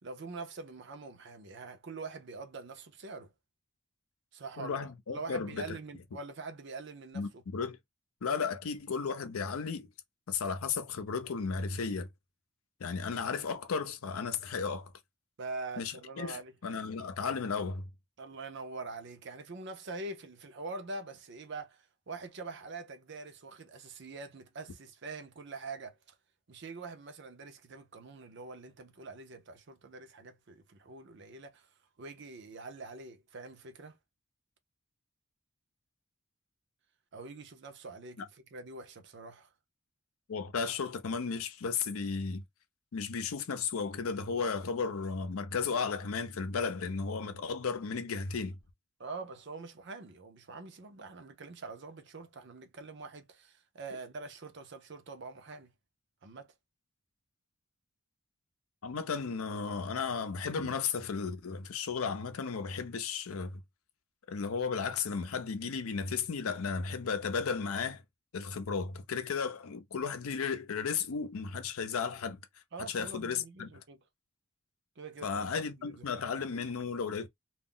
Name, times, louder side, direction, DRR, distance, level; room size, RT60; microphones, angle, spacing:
voice 1, 0.0-3.3 4.3-7.4 15.4-16.5 18.2-26.0 26.5-31.7 32.0-33.9 37.1-39.5 49.0-55.7 56.2-56.5 60.6-60.7 72.7-74.0 75.0-76.6, right 3 dB, 55° right, 0.6 m, -44 dB
voice 2, 4.6-5.8 7.1-7.8 8.2-9.9 10.3-12.1 12.8-14.9 15.8-17.9 40.3-42.4 42.9-48.6 58.8-63.6 64.3-68.0 68.3-72.4 72.9-73.7 75.2-77.3, left 5 dB, 85° left, 0.5 m, -34 dB
2.3 x 2.0 x 3.7 m
head